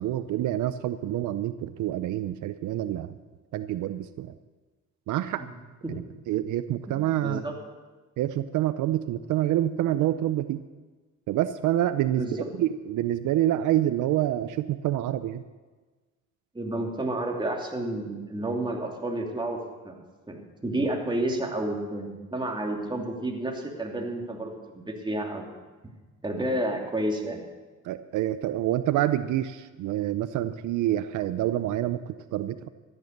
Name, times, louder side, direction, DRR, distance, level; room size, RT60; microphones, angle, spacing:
voice 1, 0.0-3.2 3.5-4.3 5.1-5.4 5.9-7.4 8.2-10.6 11.3-15.4 27.8-32.0 32.3-32.7, right 13 dB, 85° right, 12 dB, 0.6 m, -27 dB
voice 2, 6.9-7.6 12.2-12.5 16.5-19.6 19.8-20.0 20.3-25.5 26.2-27.4, right 1 dB, 15° right, 0 dB, 2.8 m, -30 dB
14.0 x 11.0 x 6.6 m, 1.3 s
cardioid pair, 90°, 30 cm